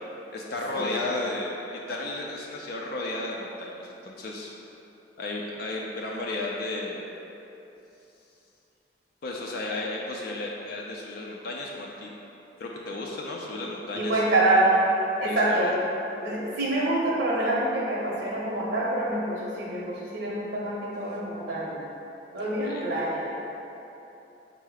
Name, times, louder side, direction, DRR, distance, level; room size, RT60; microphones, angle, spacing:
voice 1, 0.3-4.5 5.2-7.0 9.2-12.1 12.6-14.3 15.2-15.7 22.4-22.8, left 2 dB, 55° left, -2 dB, 0.4 m, -34 dB
voice 2, 13.9-14.9 15.2-15.7 16.2-21.8 22.3-23.3, right 1 dB, 70° right, -5 dB, 0.7 m, -26 dB
5.4 x 2.0 x 4.8 m, 3.0 s
head